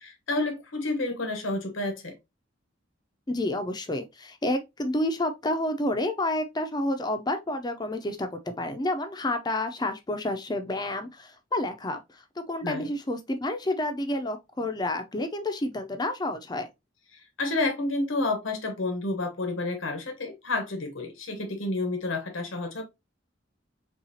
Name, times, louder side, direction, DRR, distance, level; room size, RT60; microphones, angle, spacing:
voice 1, 0.0-2.2 12.6-12.9 17.1-22.8, left 2 dB, 80° left, 1.0 m, -30 dB
voice 2, 3.3-16.7, left 1 dB, 20° left, 0.5 m, -29 dB
5.6 x 2.4 x 2.7 m
head